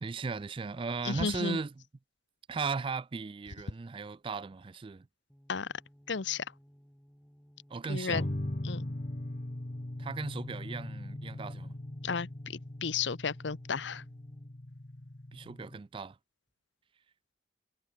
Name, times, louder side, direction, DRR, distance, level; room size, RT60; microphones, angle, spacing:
voice 1, 0.0-1.7 2.5-5.1 7.7-8.3 10.0-11.7 15.3-16.2, right 4 dB, 30° right, 0.3 m, -37 dB
voice 2, 1.0-1.6 5.5-5.7 6.1-6.4 7.9-8.3 8.6-8.9 12.0-14.0, left 5 dB, 75° left, 0.8 m, -33 dB
sound 1, 5.3-14.7, equal, 5° left, 2.3 m, -59 dB
sound 2, 8.1-15.8, left 1 dB, 40° left, 1.2 m, -40 dB
head